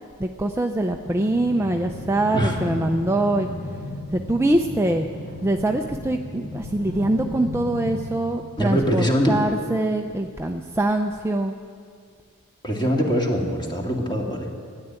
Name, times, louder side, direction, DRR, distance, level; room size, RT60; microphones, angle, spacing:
voice 1, 0.2-3.5 4.1-5.1 5.4-11.5, right 1 dB, 10° right, 4 dB, 0.5 m, -23 dB
sound 1, 1.0-8.1, left 2 dB, 50° left, 1.7 m, -35 dB
voice 2, 8.6-9.4 12.6-14.5, equal, 20° left, 0 dB, 2.1 m, -22 dB
13.0 x 11.0 x 9.0 m, 2.1 s
head